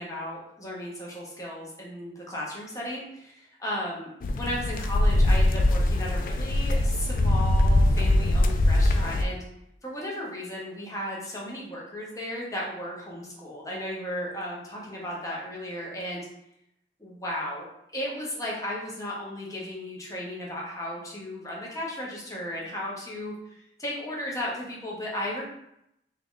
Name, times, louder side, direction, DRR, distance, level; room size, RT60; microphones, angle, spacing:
voice 1, 0.0-9.4 9.8-16.3 17.0-17.7 17.9-25.5, left 1 dB, 20° left, -4 dB, 0.9 m, -35 dB
sound 1, 4.2-9.2, left 1 dB, 50° left, 0.3 m, -22 dB
3.6 x 2.8 x 3.7 m, 0.79 s
head